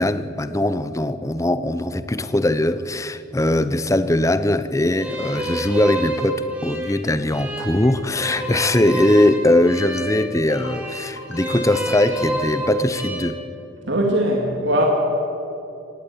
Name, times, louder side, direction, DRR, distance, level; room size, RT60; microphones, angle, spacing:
voice 1, 0.0-13.4, left 1 dB, 15° left, 12 dB, 0.7 m, -20 dB
sound 1, 5.0-13.2, right 1 dB, 5° right, 3.3 m, -29 dB
sound 2, 8.7-9.2 9.5-10.0 10.3-10.8 11.2-11.9, left 1 dB, 65° left, 3.5 m, -37 dB
voice 2, 13.8-14.9, right 1 dB, 65° right, 0 dB, 2.4 m, -20 dB
19.5 x 17.0 x 8.6 m, 2.8 s
head